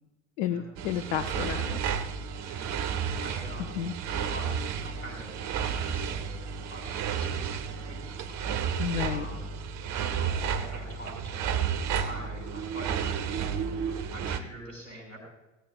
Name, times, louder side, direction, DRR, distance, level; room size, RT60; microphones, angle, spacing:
voice 1, 0.4-1.8 3.8-3.9 8.8-9.3, left 9 dB, 55° left, 7 dB, 0.8 m, -31 dB
sound 1, 0.8-14.4, right 7 dB, 45° right, 1.0 m, -32 dB
voice 2, 2.4-3.8 4.1-6.4 6.7-9.6 10.0-11.7 12.0-15.2, equal, 90° left, -1 dB, 5.3 m, -45 dB
18.0 x 14.5 x 2.4 m, 1.0 s
figure-of-eight pair, 70°, 40 cm